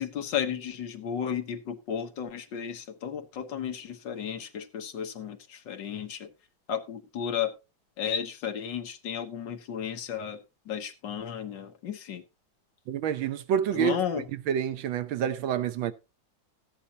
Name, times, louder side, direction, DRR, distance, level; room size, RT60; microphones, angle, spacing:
voice 1, 0.0-6.3 6.7-7.5 8.0-10.4 10.7-12.2 13.7-14.2, left 8 dB, 70° left, 1.8 m, -33 dB
voice 2, 12.9-14.0 14.3-15.9, right 9 dB, 85° right, 1.6 m, -28 dB
14.5 x 9.9 x 2.8 m
omnidirectional pair, 2.1 m